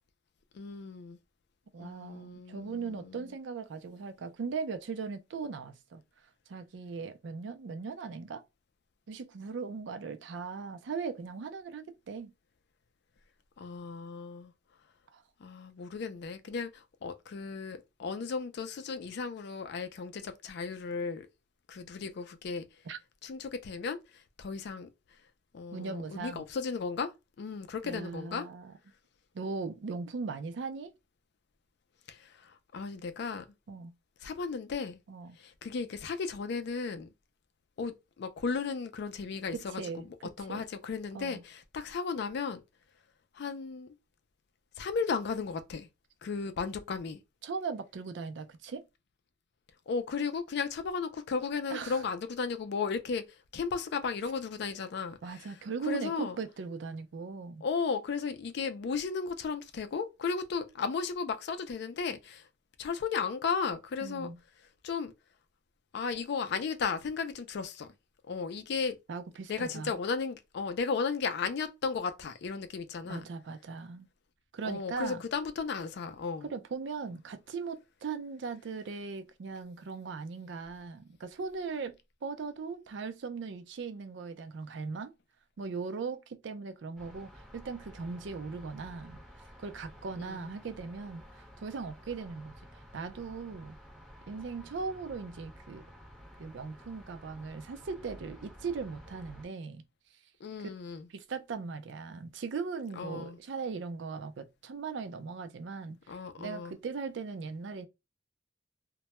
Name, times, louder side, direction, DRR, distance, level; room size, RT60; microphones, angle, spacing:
voice 1, 0.5-1.2 1.8-3.3 13.6-14.5 15.4-21.3 21.7-22.7 23.2-24.9 25.5-27.1 27.4-28.5 32.1-33.5 34.2-35.0 35.4-37.1 37.8-42.6 43.3-43.9 44.8-45.9 46.2-47.2 49.9-53.2 53.5-55.5 55.9-56.4 57.6-62.5 62.8-64.3 64.8-65.1 65.9-67.9 68.3-69.0 69.5-73.3 74.6-76.5 90.2-90.5 100.4-101.1 103.0-103.4 106.1-106.7, left 5 dB, 65° left, 0.4 m, -35 dB
voice 2, 1.7-6.0 6.5-8.4 9.1-12.3 15.1-15.2 22.8-23.0 25.7-26.4 27.8-28.7 29.3-30.9 33.7-33.9 35.1-35.4 39.5-40.1 40.4-40.6 41.1-41.4 47.4-48.8 51.7-52.0 55.2-57.6 64.0-64.4 69.1-69.9 73.0-74.1 74.5-75.2 76.4-81.9 82.2-85.1 85.6-89.2 89.6-92.6 92.9-93.8 94.3-95.9 96.4-99.8 101.1-107.9, right 5 dB, 70° right, 0.4 m, -39 dB
sound 1, 86.9-99.5, equal, 5° right, 0.9 m, -52 dB
2.2 x 2.1 x 2.8 m
head